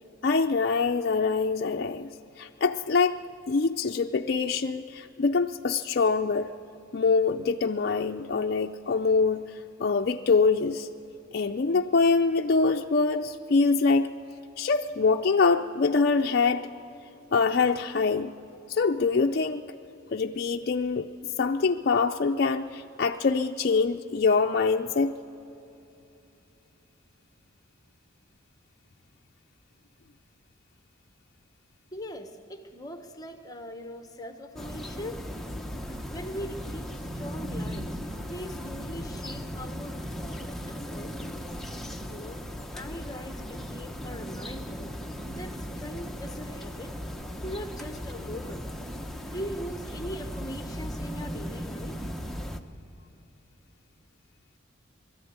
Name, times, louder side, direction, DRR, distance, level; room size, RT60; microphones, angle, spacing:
voice 1, 0.2-2.1 2.4-3.2 3.5-6.5 6.9-10.9 11.3-14.1 14.6-16.7 17.3-18.3 18.7-19.7 20.1-21.1 21.4-25.1, left 4 dB, 50° left, 3 dB, 0.4 m, -24 dB
voice 2, 31.9-35.2 35.8-41.5 42.1-42.5 42.7-44.9 45.3-47.0 47.4-48.7 49.3-52.1, equal, 20° left, 6 dB, 1.1 m, -41 dB
sound 1, 34.6-52.6, equal, ahead, 0.7 m, -37 dB
21.0 x 13.5 x 9.5 m, 2.9 s
head